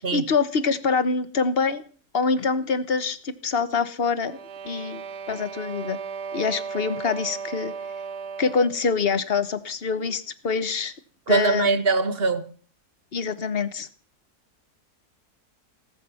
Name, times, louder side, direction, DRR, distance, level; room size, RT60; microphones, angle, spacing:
voice 1, 0.0-1.8 2.1-4.4 4.6-6.0 6.3-7.7 8.4-10.9 11.3-11.8 13.1-13.9, left 5 dB, 40° left, 1.3 m, -25 dB
sound 1, 4.1-8.9, right 5 dB, 80° right, 1.6 m, -36 dB
voice 2, 11.3-12.5, right 4 dB, 40° right, 1.3 m, -22 dB
19.0 x 10.5 x 5.8 m
omnidirectional pair, 1.7 m